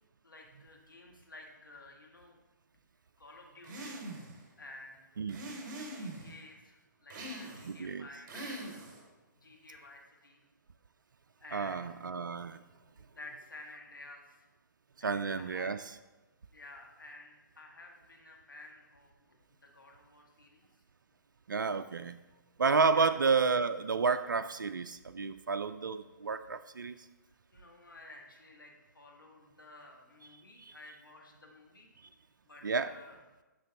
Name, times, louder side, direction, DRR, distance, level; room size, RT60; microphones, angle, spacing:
voice 1, 0.2-2.4 3.2-4.0 4.6-5.0 5.9-8.7 9.3-10.4 11.4-11.9 13.0-14.4 15.0-15.7 16.5-20.7 22.9-23.2 27.5-31.9 32.4-33.2, left 2 dB, 85° left, 0 dB, 1.5 m, -52 dB
sound 1, 3.6-4.4 5.3-6.3 7.1-7.8 8.3-9.1, right 1 dB, 30° right, 2.8 m, -43 dB
voice 2, 7.6-8.1 11.5-12.6 15.0-15.8 21.5-22.2 22.6-26.9 30.6-30.7 32.6-32.9, right 5 dB, 80° right, 10 dB, 0.4 m, -30 dB
10.5 x 6.1 x 3.4 m, 1.1 s
figure-of-eight pair, 130°, 11 cm